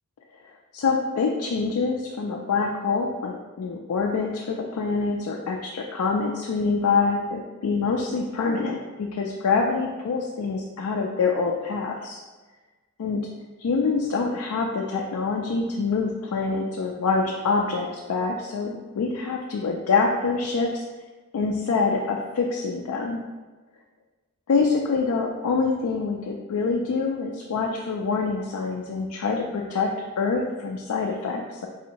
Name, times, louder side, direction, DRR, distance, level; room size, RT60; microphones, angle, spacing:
voice 1, 0.7-12.2 13.0-13.2 13.6-20.8 21.3-23.2 24.5-29.9 30.2-31.7, left 4 dB, 85° left, 0 dB, 0.4 m, -25 dB
4.1 x 2.9 x 2.6 m, 1.3 s
head